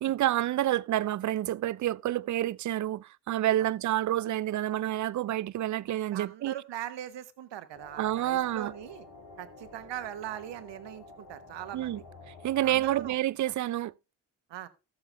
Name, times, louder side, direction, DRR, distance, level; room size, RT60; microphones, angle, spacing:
voice 1, 0.0-6.6 8.0-8.7 11.7-12.0 12.3-13.9, right 13 dB, 45° right, 0.5 m, -29 dB
voice 2, 6.1-9.1 9.4-12.0 12.6-13.2 14.5-14.7, right 12 dB, 70° right, 1.2 m, -40 dB
sound 1, 7.7-13.1, left 3 dB, 75° left, 3.2 m, -50 dB
13.5 x 7.5 x 3.4 m
hypercardioid pair, 45°, 44 cm